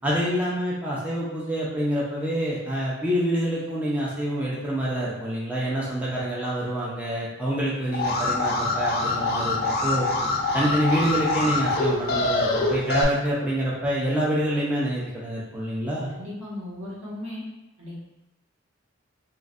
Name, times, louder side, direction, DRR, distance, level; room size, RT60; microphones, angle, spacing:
voice 1, 0.0-10.1 10.5-16.1, equal, 10° right, -7 dB, 0.5 m, -26 dB
Alarm, 7.9-13.0, left 2 dB, 50° left, 0.4 m, -25 dB
voice 2, 16.1-17.4 17.8-18.0, left 1 dB, 80° right, -8 dB, 1.3 m, -36 dB
3.1 x 2.5 x 2.5 m, 0.96 s
head